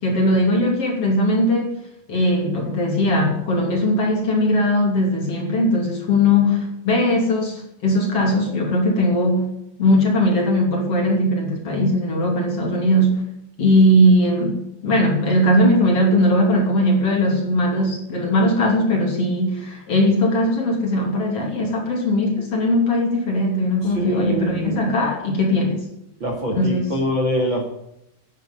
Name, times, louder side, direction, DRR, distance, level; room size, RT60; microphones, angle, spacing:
voice 1, 0.0-1.7 2.1-9.5 9.8-13.2 13.6-25.9 26.6-26.9, left 1 dB, 40° left, 0 dB, 3.5 m, -19 dB
voice 2, 23.9-24.9 26.2-27.6, right 1 dB, 35° right, -1 dB, 2.5 m, -24 dB
11.0 x 9.3 x 9.6 m, 0.82 s
omnidirectional pair, 4.5 m